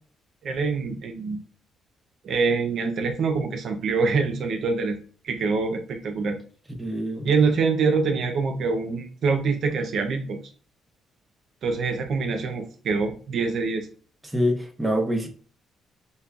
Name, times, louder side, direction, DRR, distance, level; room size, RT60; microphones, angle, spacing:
voice 1, 0.4-1.4 2.2-6.4 7.2-10.4 11.6-13.9, right 4 dB, 65° right, 0.5 m, -25 dB
voice 2, 6.8-7.3 14.2-15.3, equal, 10° right, 0.9 m, -25 dB
5.3 x 2.2 x 2.3 m
cardioid pair, 90°, 0 cm